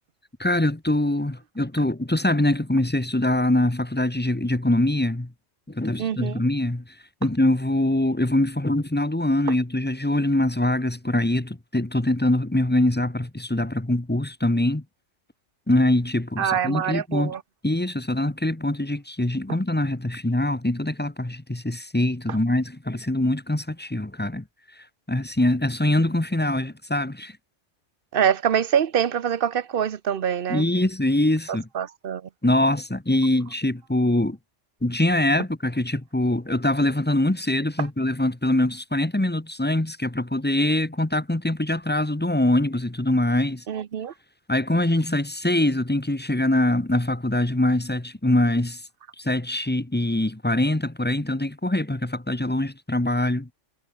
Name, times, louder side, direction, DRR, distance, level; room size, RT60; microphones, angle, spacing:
voice 1, 0.4-5.3 5.7-6.8 7.2-14.8 15.7-17.3 17.6-24.4 25.1-27.3 30.5-31.7 32.4-34.4 34.8-43.6 44.5-48.8 49.2-53.5, left 1 dB, 10° left, 1.1 m, -23 dB
voice 2, 6.0-6.3 16.4-17.4 28.1-30.6 31.7-32.2 43.7-44.1, right 8 dB, 55° right, 0.9 m, -24 dB
omnidirectional pair, 1.2 m